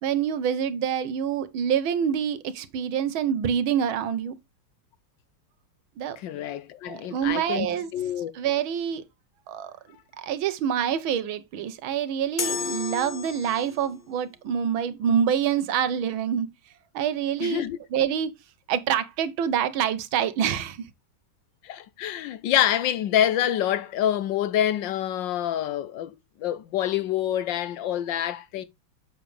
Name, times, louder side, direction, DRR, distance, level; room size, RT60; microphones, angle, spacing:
voice 1, 0.0-4.4 6.0-6.2 6.9-7.9 8.3-9.0 9.5-9.7 10.2-16.5 16.9-17.6 17.9-18.3 18.7-20.9, right 8 dB, 80° right, 1.7 m, -26 dB
voice 2, 6.2-7.7 7.9-8.3 17.4-17.8 21.6-26.1 26.4-28.7, left 11 dB, 75° left, 1.2 m, -26 dB
sound 1, 12.4-13.9, left 5 dB, 50° left, 0.5 m, -31 dB
7.5 x 6.9 x 3.2 m
omnidirectional pair, 2.2 m